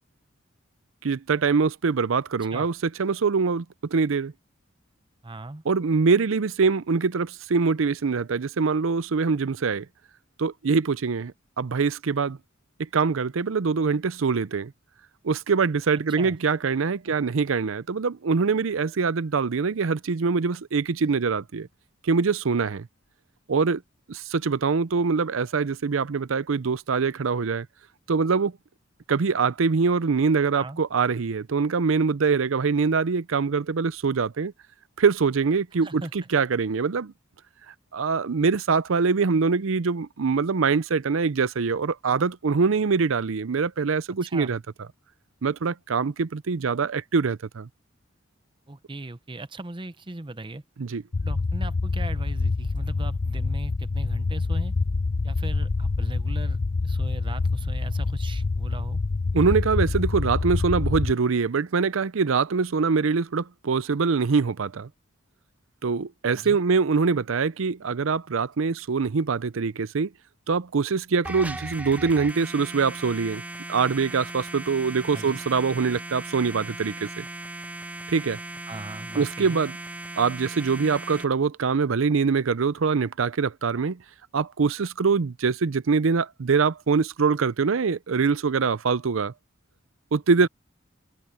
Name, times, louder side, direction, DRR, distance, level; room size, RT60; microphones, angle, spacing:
voice 1, 1.0-2.7 3.0-3.7 3.9-4.3 5.7-9.9 10.4-12.4 12.8-14.7 15.2-21.7 22.0-22.9 23.5-23.8 24.1-27.7 28.1-28.5 29.1-34.5 35.0-36.0 36.3-37.1 37.9-44.6 45.4-47.7 50.8-51.0 59.3-64.9 65.8-70.1 70.5-73.4 73.7-77.3 78.1-78.4 79.2-79.8 80.2-84.0 84.3-89.3 90.1-90.5, right 5 dB, 75° right, 0.6 m, -24 dB
voice 2, 5.2-5.6 16.2-16.4 17.1-17.2 30.6-30.8 35.7-36.1 44.2-44.6 48.7-50.6 51.2-54.7 55.2-59.0 66.3-66.6 75.1-75.4 78.7-79.6 90.4-90.5, right 2 dB, 25° right, 0.8 m, -38 dB
sound 1, 51.1-61.1, left 3 dB, 40° left, 0.5 m, -26 dB
sound 2, 71.2-81.2, right 2 dB, 5° right, 0.5 m, -38 dB
head